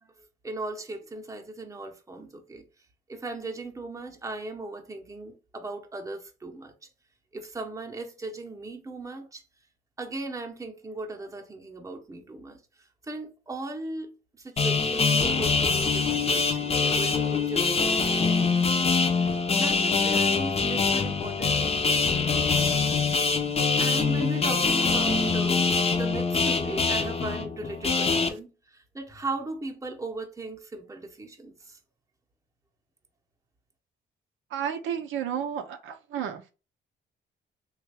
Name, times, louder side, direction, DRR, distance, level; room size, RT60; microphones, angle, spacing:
voice 1, 0.0-2.6 3.1-6.9 7.3-9.4 10.0-22.0 23.8-25.6 25.9-31.8, right 2 dB, 15° right, 0.8 m, -38 dB
sound 1, 14.6-28.3, left 4 dB, 30° left, 0.6 m, -24 dB
voice 2, 34.5-36.5, right 8 dB, 80° right, 0.5 m, -32 dB
3.3 x 2.3 x 3.3 m
cardioid pair, 90°, 20 cm